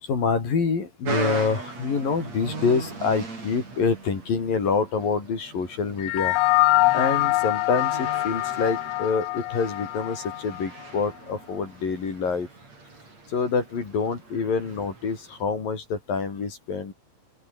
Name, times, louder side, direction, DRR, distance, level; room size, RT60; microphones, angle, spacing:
voice 1, 0.0-6.4 6.9-12.5 13.3-16.9, left 5 dB, 45° left, 6.0 m, -26 dB
sound 1, 1.0-15.4, right 3 dB, 35° right, 7.4 m, -38 dB
sound 2, 6.0-10.7, left 23 dB, 80° left, 2.8 m, -24 dB
open air
omnidirectional pair, 5.6 m